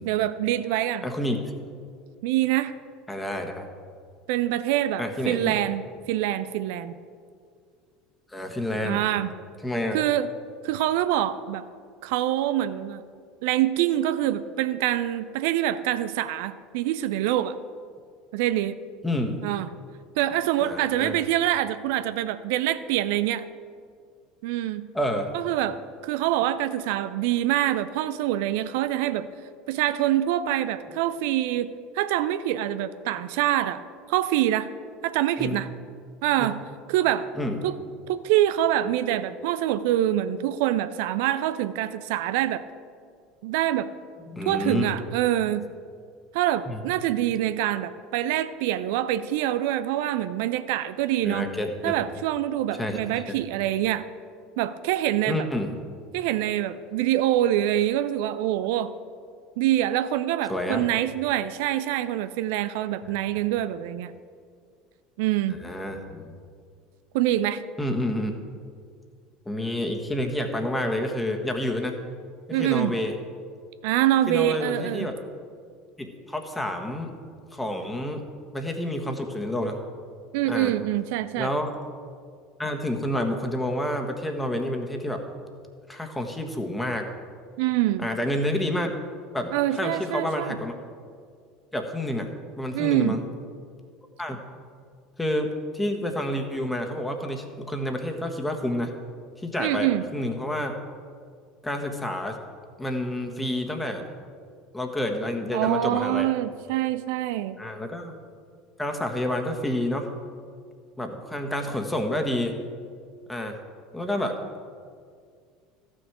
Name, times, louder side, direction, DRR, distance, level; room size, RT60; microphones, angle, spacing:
voice 1, 0.1-1.1 2.2-2.7 4.3-7.0 8.8-9.3 9.9-10.3 10.6-11.6 12.0-13.0 13.4-17.6 18.3-18.8 19.4-19.7 20.2-23.4 24.4-24.9 25.3-29.3 29.7-34.7 35.0-35.7 36.2-36.6 36.9-37.3 37.6-37.8 38.1-42.6 43.4-43.9 44.5-45.7 46.3-51.5 51.8-54.1 54.6-55.5 56.1-58.9 59.6-64.1 65.2-65.6 67.1-67.6 72.5-73.0 73.8-75.1 80.3-81.5 87.6-88.1 89.5-90.6 92.7-93.2 99.6-100.0 105.5-107.6, right 13 dB, 65° right, 13 dB, 0.4 m, -25 dB
voice 2, 1.0-1.4 3.1-3.7 5.0-5.6 8.3-9.0 9.6-10.0 19.0-19.4 20.6-21.2 24.9-25.3 35.4-35.6 36.4-36.5 37.4-37.6 44.3-44.9 46.7-46.8 51.2-51.9 52.7-53.3 55.3-55.8 60.5-60.8 63.0-63.1 65.6-66.4 67.8-68.3 69.4-72.0 72.5-73.1 74.3-75.1 76.0-77.2 77.5-78.2 78.5-79.8 80.5-80.7 81.4-81.7 82.6-85.2 85.9-87.1 88.0-88.9 89.3-90.8 91.7-92.3 92.6-93.2 94.2-94.4 95.2-98.9 99.4-100.8 101.6-102.4 102.8-104.1 104.7-106.3 107.6-108.2 108.8-110.1 111.0-112.6 113.3-113.6 113.9-114.4, left 1 dB, 10° left, 4 dB, 1.5 m, -29 dB
14.0 x 6.4 x 4.7 m, 2.1 s
hypercardioid pair, 70°, 0 cm